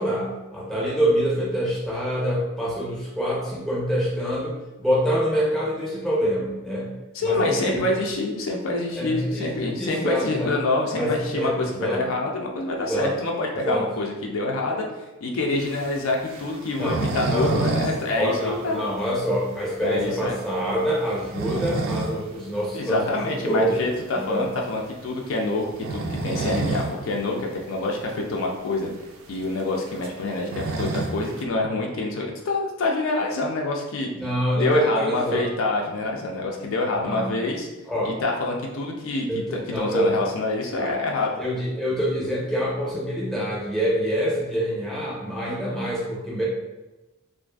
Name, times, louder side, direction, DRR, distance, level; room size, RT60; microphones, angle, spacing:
voice 1, 0.0-6.9 7.2-7.8 9.0-10.5 10.9-12.0 12.9-13.1 13.6-13.9 16.8-17.0 17.3-17.7 18.1-23.0 23.4-23.8 24.1-24.4 34.1-35.5 37.0-37.3 37.9-38.2 39.3-40.1 40.8-40.9 41.4-46.4, equal, ahead, -6 dB, 0.5 m, -26 dB
voice 2, 7.1-14.9 15.2-18.8 19.8-20.3 22.7-28.9 29.3-34.1 34.5-37.7 38.0-41.4, left 2 dB, 65° left, 0 dB, 0.4 m, -26 dB
sound 1, 15.6-18.0 18.2-18.3 18.8-18.9 19.4-19.5 21.0-22.2 22.6-22.7 24.3-24.5 25.7-27.0 27.3-27.4 27.7-27.8 28.5-28.6 28.8-31.4, right 3 dB, 65° right, 0.3 m, -29 dB
2.5 x 2.4 x 2.3 m, 1.1 s
head